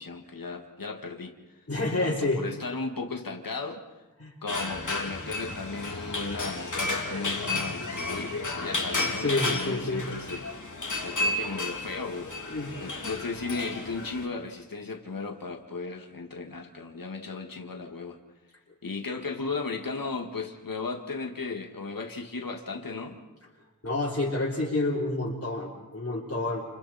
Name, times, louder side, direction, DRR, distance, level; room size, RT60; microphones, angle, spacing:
voice 1, 0.0-1.4 2.0-3.8 4.4-10.5 11.0-18.2 18.8-23.2, left 4 dB, 80° left, 4 dB, 2.1 m, -36 dB
voice 2, 1.7-2.4 4.2-4.3 9.2-10.1 12.5-12.7 23.8-26.7, left 2 dB, 45° left, -4 dB, 3.8 m, -28 dB
sound 1, 4.5-14.3, left 2 dB, 60° left, 3.1 m, -32 dB
29.5 x 29.5 x 4.4 m, 1.1 s
wide cardioid pair, 75°, 34 cm